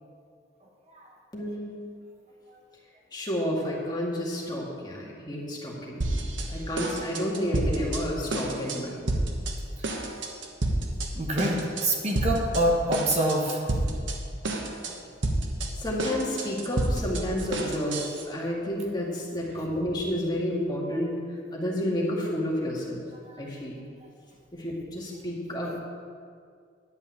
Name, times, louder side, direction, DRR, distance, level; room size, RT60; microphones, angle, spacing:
voice 1, 0.6-1.1 11.1-13.7 14.6-14.9 23.2-23.5, right 1 dB, 35° right, 0 dB, 1.2 m, -27 dB
voice 2, 1.3-1.7 3.1-9.0 15.7-18.0 18.3-21.2 21.5-23.0 23.4-23.8 24.5-25.8, equal, 20° left, -3 dB, 2.0 m, -30 dB
sound 1, 6.0-6.5 6.8-8.0 8.3-8.8 9.1-9.5 9.8-11.1 11.4-11.8 12.2-12.6 12.9-14.2 14.4-14.9 15.2-18.2, right 2 dB, 80° right, 1.3 m, -29 dB
11.0 x 5.4 x 8.5 m, 2.2 s
head